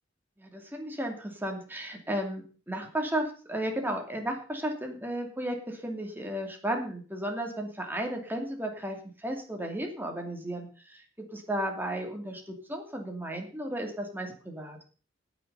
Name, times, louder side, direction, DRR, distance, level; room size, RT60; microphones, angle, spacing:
voice 1, 0.4-11.0 11.3-14.8, right 1 dB, 10° right, 2 dB, 2.6 m, -34 dB
17.5 x 6.2 x 5.5 m, 0.38 s
head